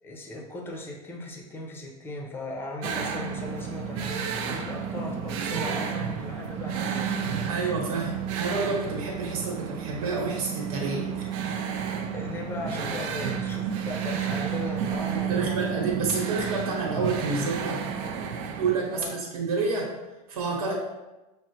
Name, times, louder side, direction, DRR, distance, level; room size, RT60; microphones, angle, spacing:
voice 1, 0.0-7.3 12.1-15.8 18.9-19.1, left 2 dB, 10° left, 0 dB, 0.6 m, -38 dB
sound 1, 2.8-18.8, right 7 dB, 60° right, 0.5 m, -31 dB
voice 2, 7.5-11.3 15.1-17.8 18.6-19.9 20.3-20.7, right 4 dB, 90° right, -2 dB, 1.2 m, -29 dB
6.2 x 2.1 x 2.8 m, 1.0 s
supercardioid pair, 135°, 19 cm